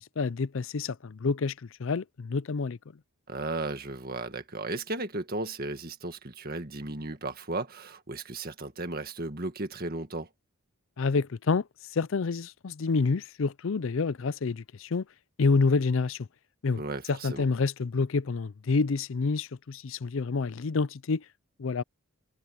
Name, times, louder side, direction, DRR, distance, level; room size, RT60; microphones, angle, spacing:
voice 1, 0.2-1.5 1.8-2.8 11.0-11.6 11.9-15.0 15.4-16.3 16.6-16.8 17.1-21.2 21.6-21.8, left 4 dB, 60° left, 0.5 m, -28 dB
voice 2, 3.3-10.3 16.8-17.5, right 2 dB, 45° right, 1.9 m, -35 dB
head